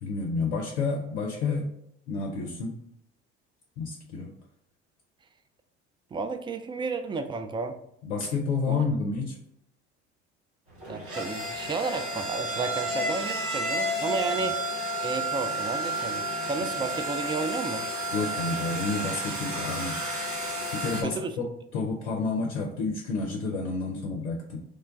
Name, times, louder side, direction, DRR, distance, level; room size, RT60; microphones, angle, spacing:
voice 1, 0.0-1.7 2.1-2.8 3.8-4.3 8.0-9.4 18.1-20.0 20.7-21.4 21.7-24.6, left 4 dB, 85° left, 0 dB, 0.5 m, -30 dB
voice 2, 6.1-7.8 8.7-8.8 10.9-14.6 15.0-17.9 21.0-21.5, right 4 dB, 15° right, 7 dB, 0.3 m, -32 dB
sound 1, 10.7-21.0, right 1 dB, 40° right, 1.4 m, -31 dB
3.2 x 2.2 x 3.6 m, 0.74 s
hypercardioid pair, 60°, 35 cm